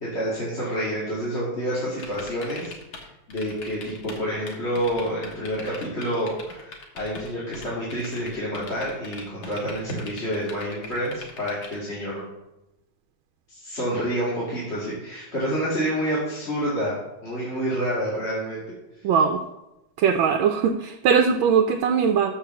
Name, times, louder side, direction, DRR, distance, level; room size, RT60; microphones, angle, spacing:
voice 1, 0.0-2.7 3.3-12.2 13.5-18.6, equal, 35° left, -8 dB, 2.4 m, -28 dB
sound 1, 2.0-3.0 3.3-4.2 4.5-7.3 7.5-11.7, left 3 dB, 85° left, 2.2 m, -40 dB
voice 2, 19.0-19.4 20.0-22.3, right 6 dB, 85° right, 6 dB, 1.4 m, -20 dB
6.6 x 5.6 x 6.8 m, 0.93 s
omnidirectional pair, 2.1 m